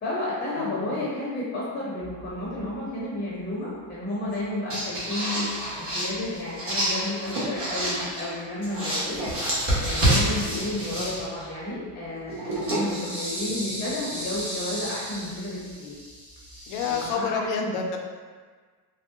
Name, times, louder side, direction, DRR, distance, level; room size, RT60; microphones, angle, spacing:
voice 1, 0.0-5.5 5.8-9.2 9.8-15.9 16.8-17.5, left 1 dB, 20° left, -7 dB, 0.7 m, -32 dB
voice 2, 0.6-0.9 16.7-18.0, left 5 dB, 70° left, 2 dB, 0.6 m, -29 dB
sound 1, 2.0-2.6 4.3-4.4 4.7-8.3 8.6-11.5 12.3-17.1, right 1 dB, 30° right, 1.2 m, -29 dB
3.5 x 2.1 x 2.6 m, 1.5 s
cardioid pair, 115°, 47 cm